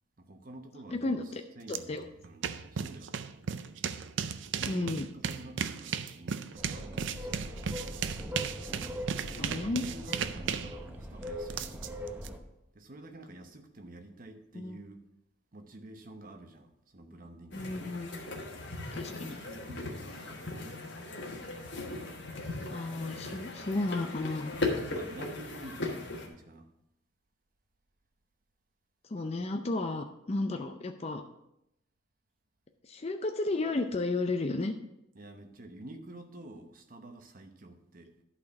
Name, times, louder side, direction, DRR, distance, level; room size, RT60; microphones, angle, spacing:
voice 1, 0.2-3.3 4.5-7.6 9.2-12.0 12.7-15.0 15.5-17.8 19.0-21.1 24.9-26.7 35.1-38.2, right 1 dB, 40° right, 5 dB, 0.9 m, -49 dB
voice 2, 0.9-1.4 1.7-2.1 4.7-5.1 9.3-9.8 14.6-14.8 17.5-18.1 18.9-19.4 22.7-24.6 29.1-31.2 32.8-34.7, left 2 dB, 30° left, 5 dB, 0.4 m, -33 dB
sound 1, 1.7-1.8 2.1-12.3, right 7 dB, 60° right, 0.4 m, -36 dB
sound 2, 6.6-12.4, equal, 10° right, 0.7 m, -41 dB
sound 3, 17.5-26.3, left 2 dB, 55° left, 1.4 m, -38 dB
11.5 x 4.3 x 5.8 m, 0.84 s
head